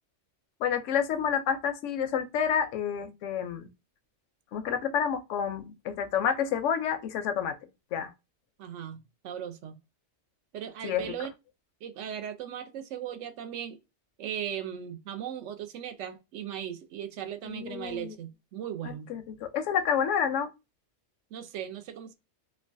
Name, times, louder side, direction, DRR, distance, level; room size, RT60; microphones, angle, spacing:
voice 1, 0.6-3.7 4.5-7.6 7.9-8.1 10.8-11.1 17.5-18.1 18.8-20.5, left 8 dB, 85° left, 0.9 m, -29 dB
voice 2, 8.6-9.0 9.2-9.8 10.5-11.3 11.8-13.8 14.2-19.1 21.3-22.1, right 9 dB, 80° right, 0.9 m, -38 dB
3.0 x 2.2 x 2.5 m
omnidirectional pair, 1.2 m